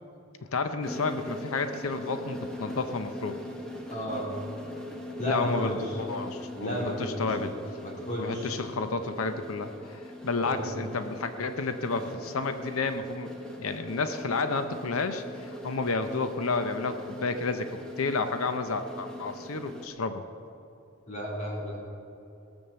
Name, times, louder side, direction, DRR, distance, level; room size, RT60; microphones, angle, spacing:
voice 1, 0.5-3.4 5.3-7.5 8.2-13.3 13.6-20.2, left 4 dB, 85° left, 9 dB, 0.7 m, -31 dB
sound 1, 0.8-19.9, left 1 dB, 5° left, 1.2 m, -41 dB
voice 2, 3.9-4.2 5.2-5.9 6.6-7.5 7.8-8.6 10.4-10.7 21.1-21.8, equal, 35° left, -3 dB, 3.3 m, -33 dB
17.5 x 7.2 x 7.0 m, 2.8 s
head